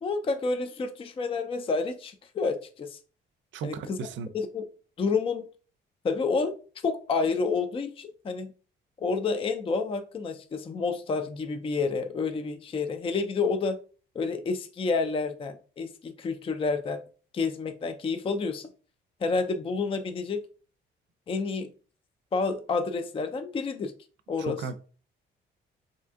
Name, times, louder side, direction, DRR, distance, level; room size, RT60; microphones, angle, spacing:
voice 1, 0.0-3.0 3.6-4.0 4.3-4.6 5.0-5.4 6.0-6.5 6.8-8.5 9.0-13.8 14.2-17.0 17.3-18.7 19.2-20.4 21.3-21.7 22.3-23.9 24.3-24.6, left 4 dB, 30° left, 7 dB, 0.4 m, -29 dB
voice 2, 3.5-4.3 24.4-24.7, right 6 dB, 70° right, 11 dB, 0.5 m, -35 dB
2.7 x 2.5 x 3.5 m, 0.38 s
cardioid pair, 90°, 20 cm